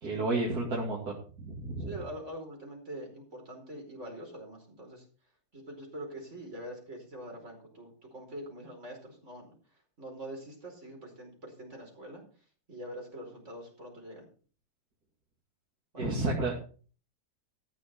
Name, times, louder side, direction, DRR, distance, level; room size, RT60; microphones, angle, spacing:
voice 1, 0.0-1.9 16.0-16.5, right 2 dB, 80° right, -3 dB, 3.1 m, -31 dB
voice 2, 1.9-5.1 5.5-12.2 12.7-14.3 15.9-16.1, right 1 dB, 50° right, 1 dB, 5.2 m, -44 dB
14.5 x 6.5 x 6.6 m, 0.41 s
omnidirectional pair, 1.6 m